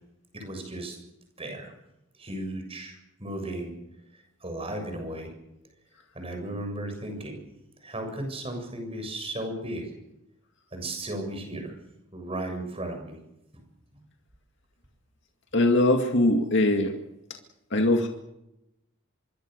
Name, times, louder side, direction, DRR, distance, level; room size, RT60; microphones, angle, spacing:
voice 1, 0.3-1.0 1.4-1.7 2.2-3.7 4.1-5.3 6.1-7.4 7.8-9.9 10.7-11.8 12.1-13.2 13.5-13.6, right 1 dB, 30° right, 5 dB, 7.2 m, -35 dB
voice 2, 15.5-17.0 17.7-18.1, left 1 dB, 60° left, 3 dB, 2.1 m, -21 dB
25.5 x 22.5 x 6.7 m, 0.88 s
head